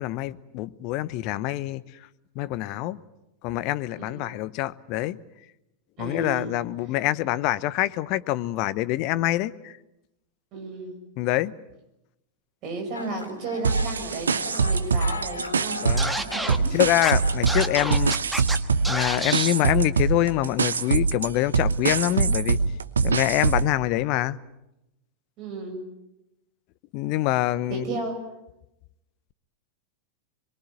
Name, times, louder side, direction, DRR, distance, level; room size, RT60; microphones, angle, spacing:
voice 1, 0.0-1.8 2.3-3.0 3.4-5.2 6.0-9.7 11.2-11.5 15.8-16.2 16.7-18.1 18.9-22.6 23.0-24.4 26.9-27.9, left 15 dB, 45° left, 0.8 m, -25 dB
voice 2, 6.0-6.6 10.5-10.9 12.6-15.9 16.2-16.8 25.4-25.8 27.7-28.2, right 3 dB, 40° right, 7.1 m, -34 dB
sound 1, 12.9-18.1, left 3 dB, 80° left, 2.6 m, -38 dB
sound 2, 13.6-16.2 16.5-23.7, right 5 dB, 70° right, 1.0 m, -24 dB
Scratching (performance technique), 16.0-16.6 17.0-17.1 17.5-18.6 18.8-19.5, right 1 dB, 5° right, 1.4 m, -29 dB
24.0 x 22.5 x 9.1 m
figure-of-eight pair, 90°, 0 cm